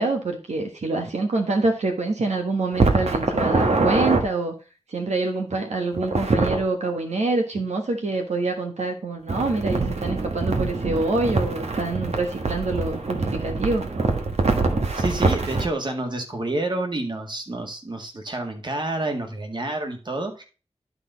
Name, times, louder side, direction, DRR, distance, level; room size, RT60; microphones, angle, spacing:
voice 1, 0.0-4.5 4.9-13.8, right 3 dB, 90° right, 3 dB, 1.3 m, -26 dB
sound 1, 2.7-4.2 5.9-6.6 9.3-15.7, right 3 dB, 70° right, 1.4 m, -24 dB
voice 2, 15.0-20.4, right 2 dB, 45° right, 4 dB, 1.9 m, -29 dB
11.5 x 4.1 x 3.9 m, 0.33 s
wide cardioid pair, 90°, 11 cm